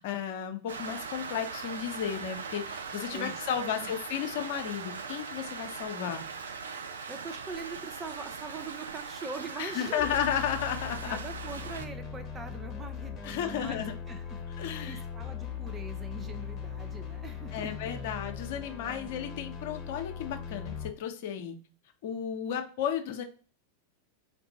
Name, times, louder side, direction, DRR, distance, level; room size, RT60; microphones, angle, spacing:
voice 1, 0.0-6.2 9.6-11.2 13.2-13.9 14.6-15.0 17.5-21.6 22.0-23.2, left 9 dB, 50° left, 6 dB, 0.7 m, -33 dB
Rain, 0.7-11.9, right 5 dB, 70° right, 0.4 m, -40 dB
voice 2, 3.1-3.9 7.1-10.2 11.0-17.7, right 4 dB, 20° right, 7 dB, 0.5 m, -43 dB
sound 1, 10.0-20.9, left 6 dB, 25° left, 1.0 m, -40 dB
4.7 x 2.5 x 4.1 m, 0.38 s
figure-of-eight pair, 90°, 0 cm